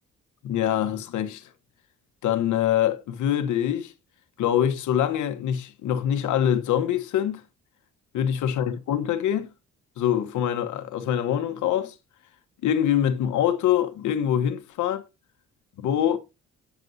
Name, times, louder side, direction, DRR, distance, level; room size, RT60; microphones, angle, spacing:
voice 1, 0.4-1.5 2.2-3.9 4.4-7.4 8.1-9.5 10.0-11.9 12.6-15.0 15.8-16.2, left 10 dB, 80° left, 1.0 m, -24 dB
9.3 x 6.8 x 2.6 m
cardioid pair, 90°, 30 cm